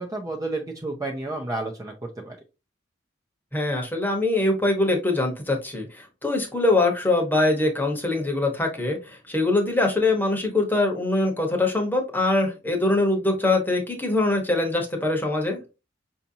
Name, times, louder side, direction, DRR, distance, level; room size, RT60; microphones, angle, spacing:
voice 1, 0.0-2.4, right 2 dB, 20° right, 1 dB, 0.5 m, -31 dB
voice 2, 3.5-15.6, left 2 dB, 10° left, 2 dB, 1.0 m, -23 dB
5.6 x 2.7 x 2.7 m, 0.29 s
head